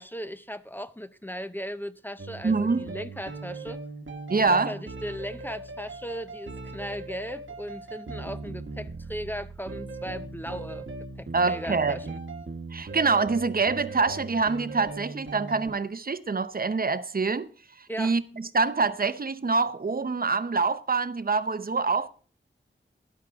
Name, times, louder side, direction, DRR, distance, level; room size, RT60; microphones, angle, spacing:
voice 1, 0.0-3.8 4.4-10.9 11.2-12.2 17.9-18.1, equal, 10° left, 0.6 m, -37 dB
sound 1, 2.2-15.7, right 3 dB, 70° right, 1.1 m, -39 dB
voice 2, 2.4-2.9 4.3-4.7 11.3-12.1 12.7-17.5 17.8-22.1, right 4 dB, 45° right, 0.7 m, -25 dB
12.5 x 10.0 x 3.5 m
wide cardioid pair, 65°, 20 cm